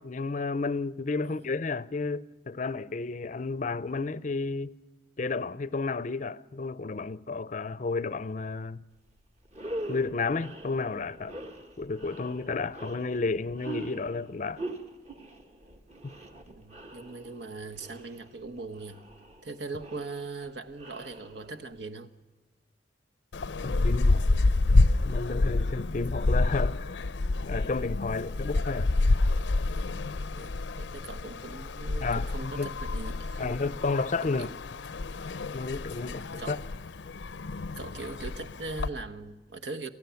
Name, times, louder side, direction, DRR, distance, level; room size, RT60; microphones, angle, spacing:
voice 1, 0.0-4.7 5.2-8.8 9.9-11.4 11.8-14.6 16.0-16.1 23.6-24.3 25.0-27.0 27.5-28.9 32.0-32.7 33.4-34.6 35.5-36.6, left 3 dB, 45° left, 0.5 m, -32 dB
sound 1, 9.0-9.1 9.5-21.8, right 2 dB, 35° right, 1.7 m, -43 dB
voice 2, 16.5-19.0 19.4-22.1 30.3-33.5 34.2-34.5 36.0-36.6 37.8-39.9, right 3 dB, 70° right, 1.2 m, -40 dB
sound 2, 23.3-38.9, left 2 dB, 85° left, 0.6 m, -28 dB
28.0 x 15.0 x 7.0 m
head